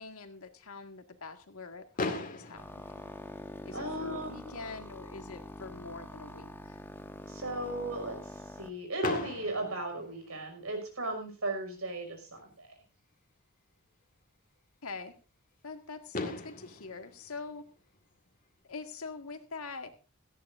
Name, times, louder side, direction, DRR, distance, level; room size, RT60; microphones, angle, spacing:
voice 1, 0.0-3.1 3.6-6.8 14.8-15.1 15.6-17.7 18.6-19.9, left 4 dB, 85° left, 7 dB, 1.9 m, -44 dB
Fireworks, 2.0-4.0 4.8-4.9 5.1-5.3 5.6-5.7 9.0-10.8 12.5-12.6 15.7-15.8 16.1-18.4, left 3 dB, 40° left, 1.9 m, -39 dB
sound 1, 2.5-8.7, left 1 dB, 10° left, 1.2 m, -45 dB
voice 2, 3.7-4.6 7.3-12.7, right 2 dB, 75° right, 5 dB, 5.8 m, -36 dB
17.5 x 14.5 x 2.6 m, 0.33 s
head